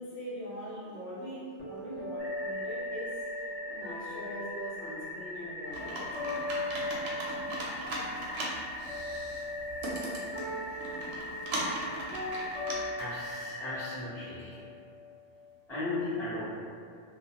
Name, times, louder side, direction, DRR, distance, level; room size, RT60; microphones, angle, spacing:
voice 1, 0.0-3.2 3.7-6.4, equal, 70° left, -8 dB, 0.9 m, -41 dB
sound 1, 1.6-7.6 7.8-15.6, left 1 dB, 20° left, 0.3 m, -40 dB
sound 2, 2.2-13.8, left 2 dB, 45° left, 1.0 m, -42 dB
Computer keyboard, 5.7-12.7, right 1 dB, 70° right, 0.8 m, -38 dB
voice 2, 13.0-14.6 15.7-16.4, left 2 dB, 5° left, -14 dB, 0.7 m, -36 dB
2.3 x 2.1 x 2.9 m, 2.4 s
omnidirectional pair, 1.2 m